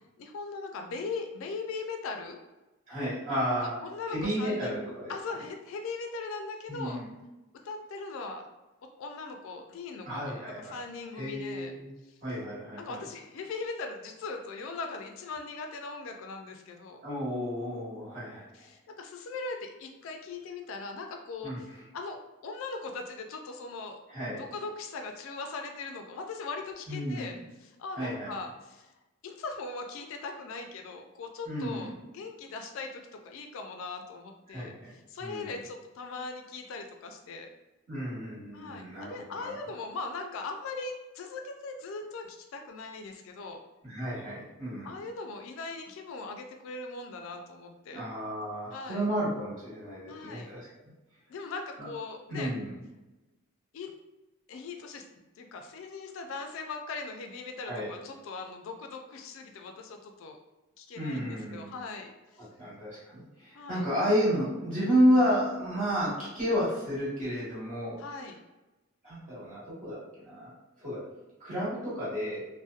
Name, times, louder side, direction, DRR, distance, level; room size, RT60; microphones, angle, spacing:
voice 1, 0.2-2.4 3.6-4.8 5.1-7.0 7.6-8.5 9.0-11.7 12.8-17.0 18.5-21.7 21.9-22.2 22.4-24.0 24.3-28.9 29.2-37.5 38.5-43.6 44.8-48.1 48.7-49.0 50.1-50.5 51.3-52.5 53.7-53.9 54.5-55.0 55.4-60.4 60.8-62.5 63.5-63.9 68.0-68.4, left 3 dB, 65° left, 5 dB, 0.3 m, -40 dB
voice 2, 2.9-3.8 4.1-5.1 6.7-7.1 10.0-10.8 11.1-11.9 12.2-13.0 17.0-18.7 21.4-21.6 24.1-24.4 26.9-27.3 27.9-28.3 31.4-31.9 34.5-35.5 37.9-39.6 43.8-44.9 47.9-50.7 51.8-51.9 52.3-52.7 57.6-57.9 60.9-61.7 62.6-68.0 69.0-70.5 70.8-71.0 71.4-72.4, equal, 35° right, -9 dB, 1.2 m, -31 dB
2.7 x 2.1 x 2.3 m, 1.1 s
head